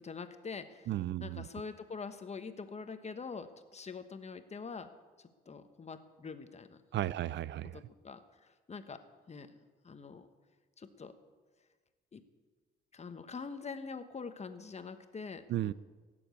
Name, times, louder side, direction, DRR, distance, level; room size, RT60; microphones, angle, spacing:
voice 1, 0.0-0.9 1.2-4.9 5.2-7.0 7.7-9.0 9.3-9.5 9.8-10.3 10.8-11.1 12.1-12.2 12.9-15.7, left 5 dB, 35° left, 1.2 m, -44 dB
voice 2, 0.9-1.4 6.9-7.8 15.5-15.7, right 13 dB, 65° right, 0.4 m, -34 dB
17.0 x 7.1 x 8.3 m
cardioid pair, 90°, 20 cm